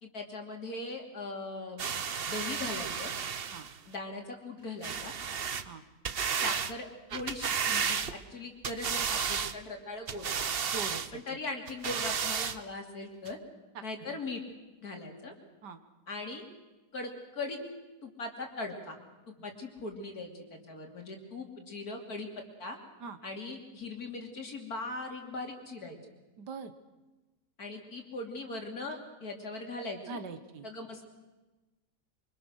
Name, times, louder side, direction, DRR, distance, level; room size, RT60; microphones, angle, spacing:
voice 1, 0.0-1.9 2.3-3.1 3.9-5.1 6.4-6.9 7.1-10.3 11.1-13.4 13.8-14.4 14.8-15.3 16.1-16.4 16.9-17.6 18.0-19.0 19.4-22.3 22.6-22.8 23.2-26.0 27.6-30.2 30.6-31.1, left 2 dB, 60° left, 3 dB, 3.4 m, -40 dB
sound 1, 1.8-3.8 4.8-5.7 6.0-6.7 7.1-8.3 8.6-9.6 10.1-11.1 11.7-12.6 13.3-13.4, right 7 dB, 45° right, 0.9 m, -33 dB
voice 2, 10.7-11.2 13.8-13.9 14.1-14.2 15.6-15.8 23.0-23.2 26.4-26.7 30.1-30.7, right 5 dB, 75° right, 10 dB, 1.9 m, -42 dB
24.5 x 24.5 x 6.5 m, 1.2 s
omnidirectional pair, 1.8 m